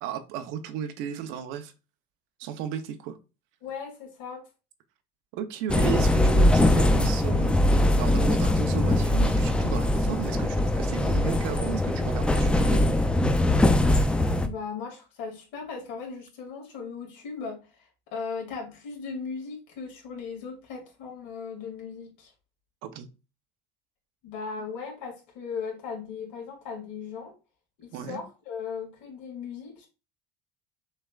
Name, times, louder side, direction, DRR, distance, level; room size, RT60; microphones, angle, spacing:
voice 1, 0.0-1.7 2.4-3.2 5.3-13.0 22.8-23.1 27.9-28.2, right 9 dB, 85° right, 0.8 m, -34 dB
voice 2, 3.6-4.5 14.4-22.3 24.2-27.3 27.8-29.9, left 5 dB, 75° left, 2.4 m, -37 dB
sound 1, 5.7-14.5, left 1 dB, 5° left, 0.4 m, -22 dB
6.5 x 3.3 x 2.4 m
cardioid pair, 140°, 19 cm